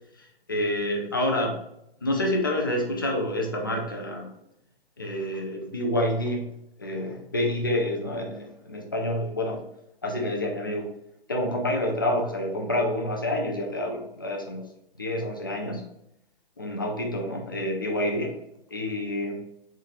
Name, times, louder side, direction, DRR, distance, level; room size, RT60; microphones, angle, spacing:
voice 1, 0.2-1.6 2.0-4.3 5.0-6.4 6.8-9.6 10.0-10.9 11.3-14.7 15.0-15.8 16.6-18.3 18.7-19.4, left 1 dB, 25° left, 1 dB, 0.3 m, -28 dB
4.2 x 2.3 x 3.2 m, 0.79 s
hypercardioid pair, 155°, 30 cm